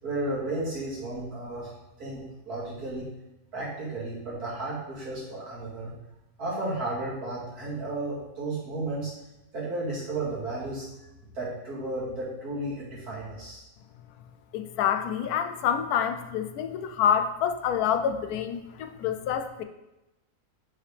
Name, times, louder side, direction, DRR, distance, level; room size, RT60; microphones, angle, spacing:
voice 1, 0.0-1.7 2.0-3.1 3.5-5.9 6.4-9.1 9.5-10.9 11.3-13.6, right 2 dB, 80° right, -7 dB, 2.7 m, -33 dB
voice 2, 14.5-19.6, left 8 dB, 80° left, 7 dB, 1.1 m, -27 dB
6.1 x 5.7 x 3.3 m, 0.96 s
omnidirectional pair, 1.6 m